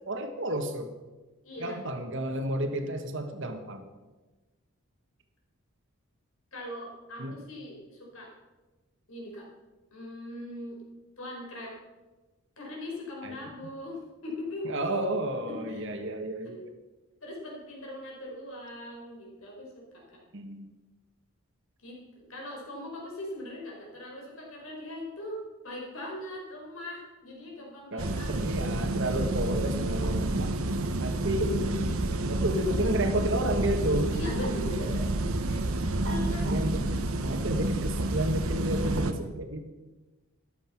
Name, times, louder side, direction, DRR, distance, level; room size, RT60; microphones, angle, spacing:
voice 1, 0.0-0.9 1.6-3.8 7.2-7.4 13.2-13.4 14.6-16.7 20.3-20.7 27.9-30.6 31.0-31.6 32.3-34.1 36.0-36.8 37.2-39.6, right 1 dB, 55° right, 6 dB, 1.5 m, -31 dB
voice 2, 1.4-1.8 6.5-8.3 9.1-9.5 9.9-10.8 11.2-11.7 12.6-14.9 15.5-15.9 17.2-20.2 21.8-28.8 30.3-31.0 34.1-35.0 35.5-36.5, left 1 dB, 65° left, -2 dB, 5.4 m, -40 dB
sound 1, 28.0-39.1, right 2 dB, 70° right, 1.1 m, -29 dB
13.5 x 11.5 x 5.9 m, 1.2 s
head